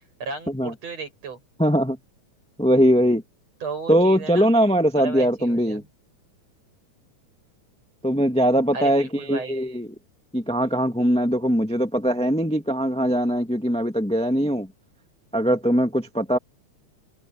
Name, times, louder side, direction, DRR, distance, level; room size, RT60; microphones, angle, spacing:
voice 1, 0.0-1.4 3.6-4.5 4.9-5.8 8.7-9.6, right 4 dB, 60° right, 9.3 m, -34 dB
voice 2, 1.6-2.0 2.6-3.2 3.9-5.8 8.0-9.9 10.3-14.7 15.3-16.4, equal, 5° left, 1.1 m, -21 dB
omnidirectional pair, 3.3 m